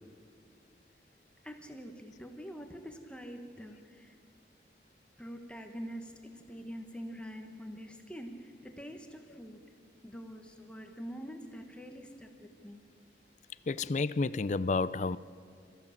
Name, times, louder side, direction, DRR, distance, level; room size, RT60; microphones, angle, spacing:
voice 1, 1.4-4.2 5.2-9.6 10.0-12.8, equal, 5° left, 1.3 m, -45 dB
voice 2, 13.7-15.2, left 3 dB, 40° left, 0.4 m, -30 dB
27.5 x 14.5 x 7.3 m
head